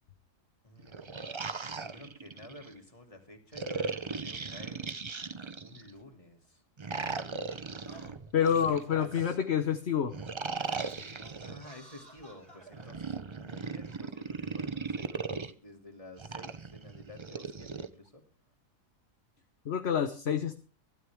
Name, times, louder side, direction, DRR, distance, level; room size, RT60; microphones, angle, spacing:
voice 1, 0.6-1.3 1.7-4.8 5.6-6.6 8.4-9.4 11.4-18.2, left 1 dB, 25° left, 4 dB, 2.9 m, -51 dB
sound 1, 0.8-2.7 3.5-5.9 6.8-9.3 10.1-11.7 12.7-15.5 16.2-17.9, right 4 dB, 30° right, 0.6 m, -38 dB
Singing, 5.9-6.0 7.1-7.2 7.8-9.4 9.9-10.0 10.4-13.0 13.8-13.9, right 2 dB, 55° right, 5.3 m, -53 dB
voice 2, 8.3-10.2 19.6-20.6, left 8 dB, 55° left, 9 dB, 1.2 m, -28 dB
23.5 x 13.0 x 3.6 m, 0.35 s
omnidirectional pair, 1.4 m